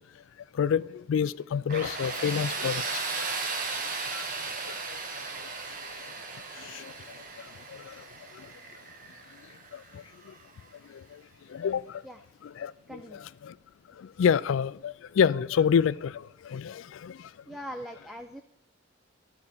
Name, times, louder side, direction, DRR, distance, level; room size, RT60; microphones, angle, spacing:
voice 1, 0.6-3.3 4.1-4.2 6.7-6.9 11.5-11.8 12.4-13.5 14.2-16.2 16.5-17.1, left 7 dB, 75° left, 0.3 m, -27 dB
Tools, 1.7-10.5, right 4 dB, 40° right, 1.1 m, -36 dB
voice 2, 12.9-13.2 17.5-18.4, equal, ahead, 0.4 m, -41 dB
11.5 x 4.2 x 6.6 m
head